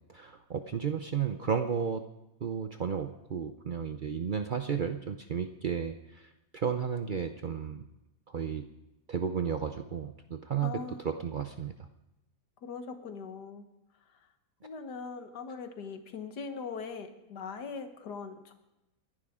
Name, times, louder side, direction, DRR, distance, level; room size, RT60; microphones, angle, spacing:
voice 1, 0.1-2.0 2.4-6.2 6.5-7.8 8.3-8.6 9.1-10.7 11.0-11.7, right 7 dB, 85° right, 7 dB, 0.4 m, -33 dB
voice 2, 10.6-11.1 12.6-13.7 14.1-14.2 14.6-18.5, left 5 dB, 75° left, 7 dB, 1.8 m, -41 dB
29.5 x 11.0 x 3.7 m, 0.95 s
omnidirectional pair, 1.8 m